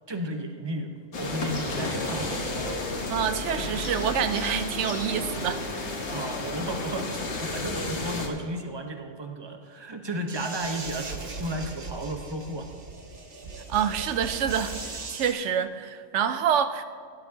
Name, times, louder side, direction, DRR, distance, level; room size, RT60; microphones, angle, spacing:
voice 1, 0.1-2.8 6.1-12.7, right 1 dB, 25° right, 4 dB, 0.8 m, -34 dB
sound 1, 1.1-8.3, left 2 dB, 70° left, 1.5 m, -32 dB
voice 2, 3.1-5.6 13.7-16.8, right 8 dB, 80° right, 11 dB, 0.9 m, -27 dB
sound 2, 10.3-15.3, right 3 dB, 55° right, 1.3 m, -38 dB
17.0 x 11.0 x 2.8 m, 2.1 s
omnidirectional pair, 1.2 m